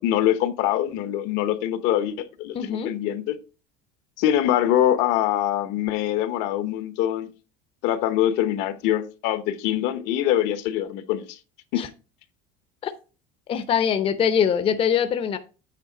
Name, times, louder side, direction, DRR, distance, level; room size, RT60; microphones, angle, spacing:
voice 1, 0.0-3.4 4.2-7.3 7.8-11.4 11.7-11.8, left 11 dB, 70° left, 0.9 m, -24 dB
voice 2, 2.5-2.9 11.7-11.9 12.8-12.9 13.5-15.4, left 8 dB, 30° left, 0.6 m, -23 dB
8.3 x 3.6 x 4.9 m
cardioid pair, 145°, 18 cm